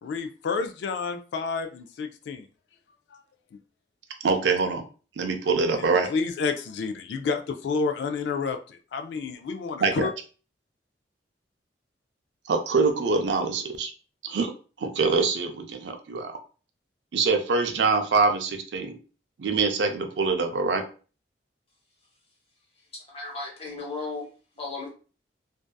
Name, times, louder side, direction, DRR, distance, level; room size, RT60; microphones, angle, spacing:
voice 1, 0.0-2.5 5.8-10.1, left 4 dB, 70° left, 0.3 m, -30 dB
voice 2, 4.2-4.8 5.2-6.1 9.8-10.1 12.5-13.9 14.2-14.5 14.8-16.3 17.1-19.0 19.4-20.8, right 4 dB, 75° right, 0.4 m, -24 dB
voice 3, 23.1-24.3 24.6-24.9, left 3 dB, 35° left, 0.8 m, -34 dB
2.6 x 2.3 x 2.2 m
head